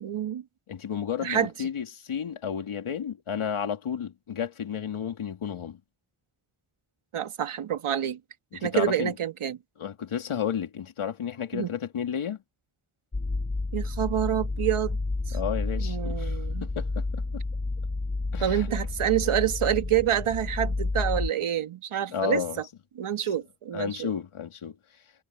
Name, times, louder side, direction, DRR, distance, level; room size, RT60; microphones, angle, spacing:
voice 1, 0.0-0.4 1.2-1.7 7.1-8.2 8.6-9.6 11.5-11.7 13.7-15.0 15.3-15.4 15.8-16.7 18.4-22.4 23.0-24.1, right 10 dB, 80° right, 1.7 m, -27 dB
voice 2, 0.7-5.8 8.5-9.1 9.8-12.4 15.3-17.4 18.3-18.7 22.1-22.6 23.7-24.7, left 8 dB, 80° left, 2.6 m, -32 dB
sound 1, 13.1-21.3, left 3 dB, 20° left, 1.1 m, -30 dB
cardioid pair, 65°, 49 cm